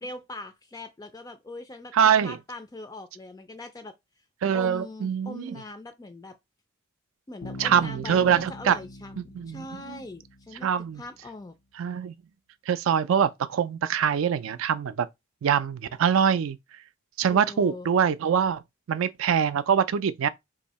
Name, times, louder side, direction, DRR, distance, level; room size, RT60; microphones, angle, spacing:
voice 1, 0.0-1.9 2.2-3.9 4.5-6.4 7.3-11.5 17.3-17.9, left 2 dB, 15° left, 0.3 m, -41 dB
voice 2, 1.9-2.4 4.4-5.6 7.6-8.8 9.2-10.0 10.6-11.0 11.8-12.1 12.7-15.1 15.4-16.6 17.2-18.6 18.9-20.3, right 8 dB, 75° right, 0.3 m, -24 dB
Bass guitar, 7.4-11.1, left 1 dB, 90° left, 0.7 m, -43 dB
2.7 x 2.6 x 4.1 m
head